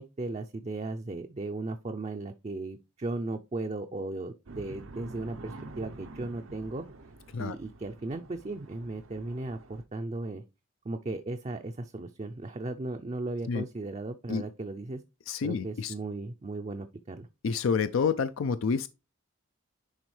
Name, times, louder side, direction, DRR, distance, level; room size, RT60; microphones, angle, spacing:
voice 1, 0.0-6.8 7.4-10.4 10.8-15.0 15.4-17.3, right 2 dB, 30° right, 0.4 m, -36 dB
sound 1, 4.5-9.8, right 2 dB, 80° right, 0.8 m, -47 dB
voice 2, 15.3-15.9 17.4-18.9, left 5 dB, 75° left, 0.4 m, -28 dB
10.5 x 3.7 x 3.1 m
head